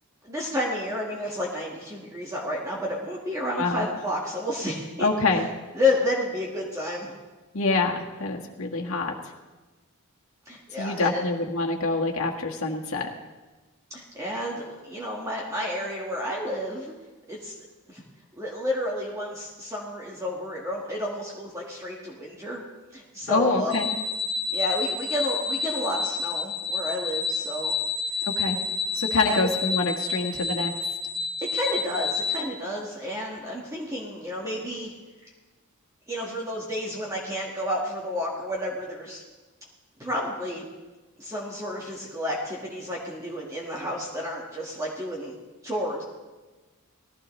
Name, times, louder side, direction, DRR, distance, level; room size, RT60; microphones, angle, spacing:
voice 1, 0.2-5.1 5.8-7.1 10.5-11.2 13.9-16.9 17.3-17.5 17.9-18.0 18.4-22.6 22.9-23.7 24.5-27.7 29.2-29.5 31.5-34.9 36.1-39.2 40.0-40.6 41.2-45.4 45.6-46.0, left 1 dB, 15° right, -3 dB, 1.7 m, -31 dB
voice 2, 5.0-5.5 7.5-9.1 10.8-13.1 23.3-23.9 28.2-28.6 29.0-30.7, left 3 dB, 70° left, 1 dB, 1.7 m, -26 dB
sound 1, 23.7-32.4, left 5 dB, 50° right, 0.9 m, -29 dB
20.0 x 15.0 x 3.2 m, 1.2 s
head